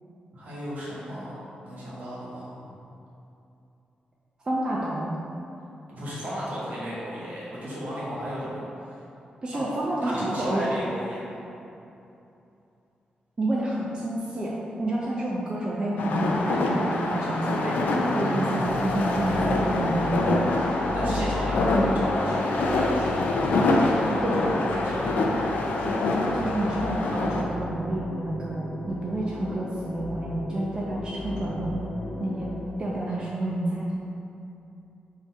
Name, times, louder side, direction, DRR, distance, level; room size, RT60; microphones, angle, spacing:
voice 1, 0.3-1.4 1.6-2.8 5.9-9.0 9.5-9.7 10.0-11.4 20.9-24.5 24.7-25.0, equal, 65° right, -7 dB, 1.3 m, -35 dB
voice 2, 4.4-5.1 9.4-10.6 13.4-17.8 18.1-20.6 21.0-21.3 24.2-24.4 25.8-26.1 26.3-31.8 32.2-32.5 32.8-33.9, right 1 dB, 30° right, -6 dB, 0.5 m, -29 dB
sound 1, 16.0-27.4, left 2 dB, 90° left, 0.4 m, -25 dB
sound 2, 18.7-32.7, left 2 dB, 30° left, 0.4 m, -36 dB
3.8 x 2.7 x 4.5 m, 2.8 s
wide cardioid pair, 130°, 3 cm